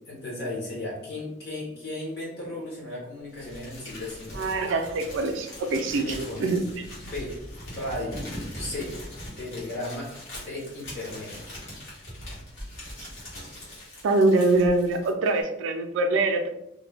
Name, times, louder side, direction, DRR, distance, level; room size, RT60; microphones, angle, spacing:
voice 1, 0.1-4.8 5.9-6.5 7.0-7.4 7.7-8.3 8.6-9.0 9.4-11.5, left 1 dB, 50° left, -4 dB, 0.9 m, -35 dB
Crumpling crinkling, 3.3-15.4, left 1 dB, 70° left, 1.3 m, -41 dB
voice 2, 4.4-6.1 6.4-6.6 13.0-13.1 14.0-16.5, right 2 dB, 70° right, 6 dB, 0.3 m, -24 dB
2.6 x 2.1 x 3.2 m, 0.82 s
head